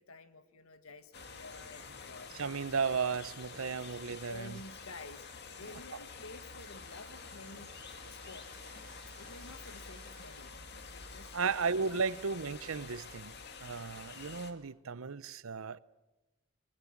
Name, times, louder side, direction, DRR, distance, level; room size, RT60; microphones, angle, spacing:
voice 1, 0.0-2.3 3.6-4.0 4.2-5.2 5.6-7.7 8.0-8.5 9.1-10.5 10.8-11.6 12.1-12.4, left 3 dB, 85° left, 1.6 m, -51 dB
sound 1, 0.8-6.0, right 2 dB, 45° right, 5.1 m, -62 dB
sound 2, 1.1-14.5, left 4 dB, 50° left, 2.0 m, -48 dB
sound 3, 2.1-2.3 2.7-5.0 6.4-10.6, right 1 dB, 5° left, 6.1 m, -62 dB
voice 2, 2.3-4.6 11.3-13.3 13.6-15.8, right 5 dB, 75° right, 0.7 m, -34 dB
23.5 x 21.5 x 7.4 m
head